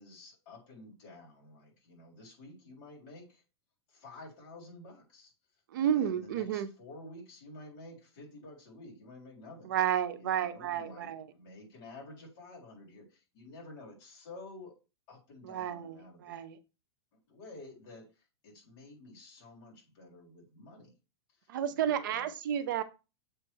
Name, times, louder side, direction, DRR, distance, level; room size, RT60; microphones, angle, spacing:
voice 1, 0.0-3.4 3.9-5.3 5.8-9.7 10.1-14.8 15.1-16.4 17.3-20.9 21.4-22.3, left 2 dB, 35° left, -4 dB, 3.6 m, -51 dB
voice 2, 5.7-6.7 9.6-11.3 15.4-16.6 21.5-22.8, right 10 dB, 45° right, 12 dB, 0.7 m, -31 dB
7.7 x 3.3 x 4.5 m, 0.30 s
supercardioid pair, 175°, 14 cm